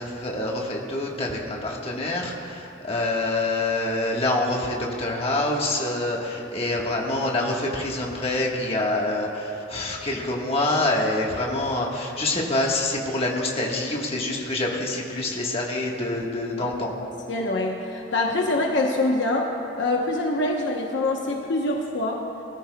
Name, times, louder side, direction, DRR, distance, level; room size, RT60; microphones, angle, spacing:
voice 1, 0.0-16.9, left 2 dB, 30° left, -2 dB, 1.4 m, -26 dB
voice 2, 17.3-19.5 19.8-22.2, left 2 dB, 60° left, 0 dB, 1.0 m, -25 dB
21.5 x 14.0 x 2.3 m, 2.9 s
head